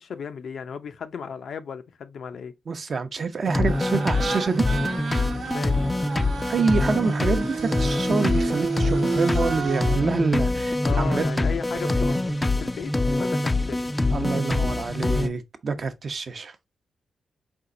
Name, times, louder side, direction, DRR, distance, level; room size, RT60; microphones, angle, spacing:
voice 1, 0.0-2.5 5.5-5.9 10.8-13.9, left 6 dB, 75° left, 0.5 m, -35 dB
voice 2, 2.7-4.6 6.5-11.2 14.1-16.5, right 4 dB, 50° right, 0.7 m, -26 dB
sound 1, 3.5-15.3, left 2 dB, 15° left, 0.4 m, -24 dB
sound 2, 3.7-10.0, right 5 dB, 70° right, 0.9 m, -31 dB
4.4 x 2.5 x 3.7 m
cardioid pair, 100°, 0 cm